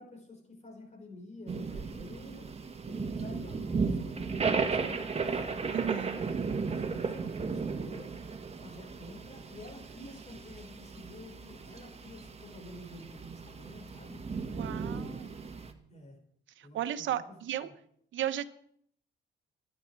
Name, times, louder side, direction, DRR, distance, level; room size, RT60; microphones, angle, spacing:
voice 1, 0.0-2.5 2.9-5.5 6.1-8.1 8.6-14.2 15.9-16.2 16.6-17.3 17.6-17.7, left 1 dB, 35° left, 3 dB, 5.4 m, -49 dB
sound 1, 1.5-15.7, right 5 dB, 30° right, 1.7 m, -35 dB
voice 2, 5.7-6.2 14.5-15.5 16.6-17.7 18.1-18.5, right 11 dB, 75° right, 9 dB, 1.1 m, -35 dB
24.0 x 10.0 x 4.8 m, 0.66 s
cardioid pair, 90°, 20 cm